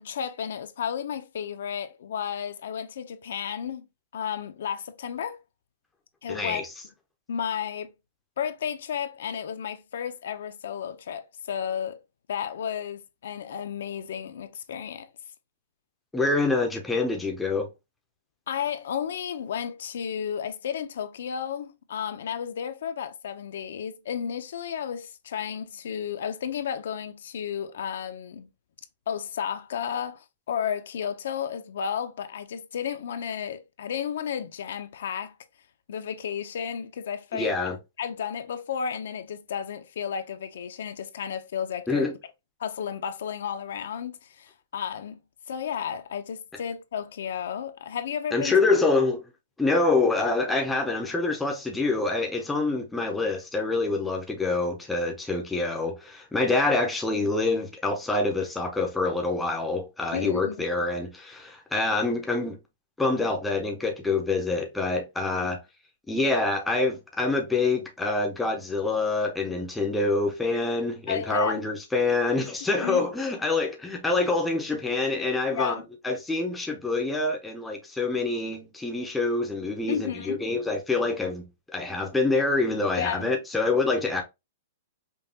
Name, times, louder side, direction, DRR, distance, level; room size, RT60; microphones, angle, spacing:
voice 1, 0.0-3.9 4.1-5.4 6.2-6.6 7.3-7.9 8.4-12.0 12.3-15.1 18.5-28.5 29.1-35.4 35.9-37.6 38.0-42.1 42.6-45.2 45.5-48.6 60.1-60.6 65.4-65.5 71.1-71.6 72.8-73.1 75.5-75.9 79.9-80.4 83.0-83.3, left 8 dB, 60° left, 0.5 m, -32 dB
voice 2, 6.3-6.6 16.1-17.7 37.3-37.8 41.9-42.1 48.3-49.3 49.6-62.6 63.0-65.6 66.1-81.4 81.7-84.2, left 3 dB, 5° left, 0.5 m, -26 dB
5.2 x 2.2 x 2.7 m
hypercardioid pair, 180°, 0 cm